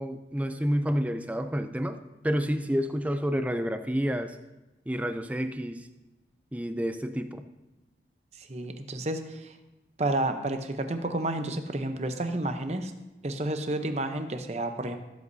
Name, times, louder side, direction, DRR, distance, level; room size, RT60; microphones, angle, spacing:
voice 1, 0.0-4.4 4.9-5.9 6.5-7.4, equal, 10° right, 8 dB, 0.4 m, -29 dB
voice 2, 8.4-9.6 10.0-12.9 13.2-15.0, right 1 dB, 35° right, 7 dB, 0.8 m, -30 dB
17.5 x 8.2 x 2.7 m, 1.0 s
head